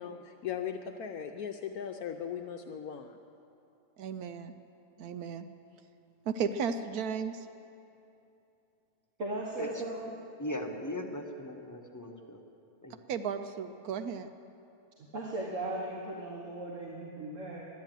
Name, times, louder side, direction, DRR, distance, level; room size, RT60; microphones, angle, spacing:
voice 1, 0.0-3.2, left 8 dB, 70° left, 5 dB, 1.1 m, -38 dB
voice 2, 4.0-4.5 5.0-5.4 6.3-7.5 13.1-14.3, right 6 dB, 70° right, 9 dB, 1.1 m, -34 dB
voice 3, 9.2-10.1 15.0-17.7, right 1 dB, 50° right, -3 dB, 1.7 m, -37 dB
voice 4, 10.4-12.4 12.8-12.9, left 1 dB, 15° left, 2 dB, 0.6 m, -39 dB
12.5 x 10.5 x 9.0 m, 2.8 s
omnidirectional pair, 1.7 m